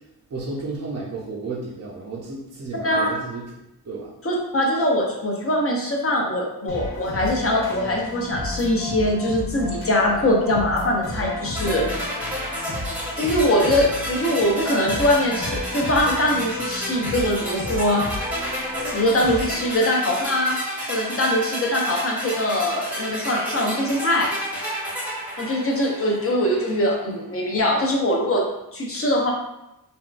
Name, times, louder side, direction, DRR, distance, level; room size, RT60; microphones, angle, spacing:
voice 1, 0.3-3.5 3.9-4.1 11.6-11.9, right 3 dB, 40° right, -5 dB, 0.5 m, -32 dB
voice 2, 4.2-11.9 13.2-18.0 18.9-20.6 20.9-24.3 25.4-28.4 28.7-29.3, left 1 dB, 35° left, -1 dB, 0.6 m, -22 dB
sound 1, 6.7-19.8, left 2 dB, 60° left, 1.1 m, -33 dB
sound 2, 11.6-26.5, equal, 5° right, 0.8 m, -31 dB
3.5 x 2.2 x 2.4 m, 0.89 s
wide cardioid pair, 120°, 39 cm